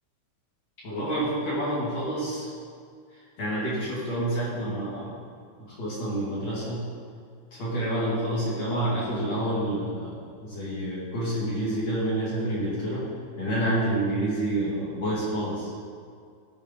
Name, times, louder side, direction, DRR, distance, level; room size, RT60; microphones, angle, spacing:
voice 1, 0.8-2.5 3.4-5.1 5.6-6.8 7.5-13.1 13.4-15.7, right 1 dB, 45° left, -9 dB, 2.7 m, -28 dB
13.5 x 4.7 x 5.4 m, 2.2 s
omnidirectional pair, 5.7 m